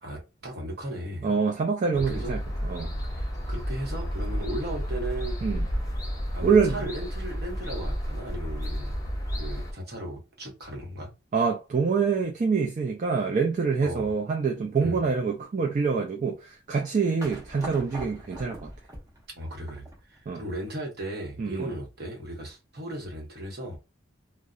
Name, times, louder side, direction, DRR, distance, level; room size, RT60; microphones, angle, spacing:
voice 1, 0.0-1.4 1.9-2.4 2.8-5.4 6.3-9.0 9.3-11.1 13.8-14.1 14.8-15.0 19.3-23.8, right 1 dB, 55° right, 1.0 m, -36 dB
voice 2, 1.2-2.9 5.4-5.7 6.4-6.8 11.3-18.7 20.3-20.4 21.4-21.7, right 5 dB, 40° right, 0.3 m, -26 dB
sound 1, 1.9-9.7, equal, 20° left, 0.5 m, -31 dB
sound 2, 17.2-20.2, right 1 dB, 15° right, 0.8 m, -42 dB
2.7 x 2.0 x 2.3 m
head